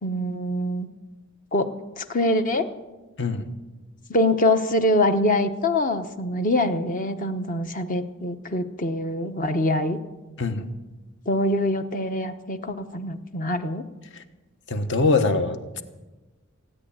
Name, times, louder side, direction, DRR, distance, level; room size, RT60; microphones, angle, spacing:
voice 1, 0.0-0.9 1.5-1.7 2.0-2.7 4.1-10.0 11.3-13.8, left 1 dB, 40° left, 9 dB, 1.0 m, -24 dB
voice 2, 14.7-15.8, left 3 dB, 60° left, 8 dB, 1.2 m, -23 dB
16.5 x 10.0 x 8.7 m, 1.2 s
head